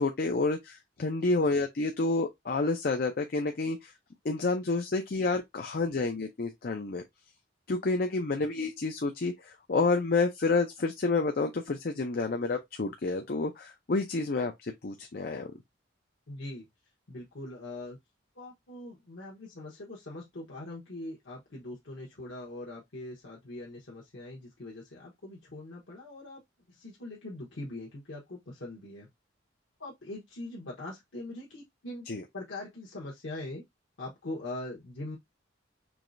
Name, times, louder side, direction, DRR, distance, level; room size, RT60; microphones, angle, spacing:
voice 1, 0.0-3.9 4.2-7.0 7.7-15.5 32.1-32.2, left 3 dB, 50° left, 0.5 m, -29 dB
voice 2, 16.3-16.7 17.1-18.0 18.3-26.4 26.7-29.1 29.8-32.1 32.3-33.6 34.0-35.2, left 2 dB, 85° left, 1.1 m, -42 dB
4.7 x 3.1 x 2.5 m
head